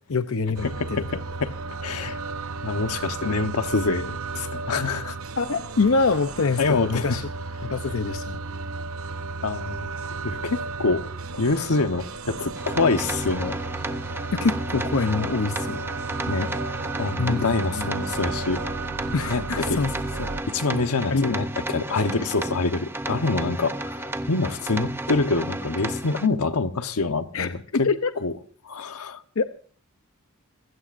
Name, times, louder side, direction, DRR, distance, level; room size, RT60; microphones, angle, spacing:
voice 1, 0.1-1.2 5.4-7.3 7.6-8.4 14.3-15.9 17.2-17.9 19.1-19.9 20.2-20.3 21.1-21.4 27.3-28.1 29.4-29.5, left 4 dB, 65° left, 0.7 m, -25 dB
sound 1, 0.5-20.4, right 3 dB, 65° right, 0.8 m, -34 dB
voice 2, 0.6-1.5 1.8-2.2 2.6-5.2 6.6-7.2 9.4-9.9 10.2-11.0 11.3-13.6 16.3-16.5 17.0-18.6 19.3-19.8 20.5-27.9 28.2-28.3 28.6-29.2, left 3 dB, 85° left, 1.2 m, -26 dB
sound 2, 12.6-26.3, right 1 dB, 10° right, 0.6 m, -32 dB
27.0 x 16.0 x 2.6 m
head